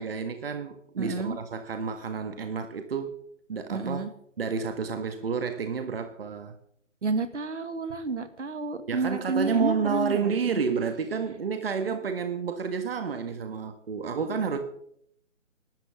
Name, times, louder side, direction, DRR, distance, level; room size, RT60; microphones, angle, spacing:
voice 1, 0.0-3.2 3.5-4.0 4.4-6.5 8.9-14.6, right 5 dB, 50° right, 1.7 m, -30 dB
voice 2, 1.0-1.4 3.7-4.1 7.0-10.6, right 4 dB, 70° right, 2.1 m, -30 dB
24.0 x 12.5 x 3.6 m
figure-of-eight pair, 155°, 37 cm